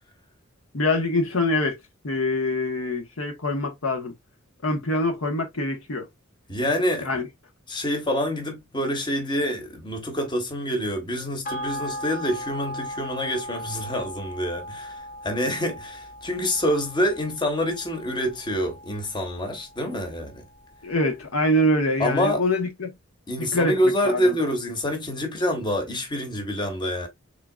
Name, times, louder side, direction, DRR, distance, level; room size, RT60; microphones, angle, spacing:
voice 1, 0.7-1.8 2.0-4.1 4.6-6.1 7.0-7.3 20.8-22.9 23.4-23.8 24.0-24.4, left 1 dB, 90° left, 1.0 m, -24 dB
voice 2, 6.5-7.2 7.7-20.4 22.0-22.4 23.3-27.1, equal, 20° left, 1.0 m, -26 dB
sound 1, 11.4-20.2 20.6-20.7, equal, 45° left, 0.8 m, -38 dB
3.7 x 3.7 x 2.3 m
head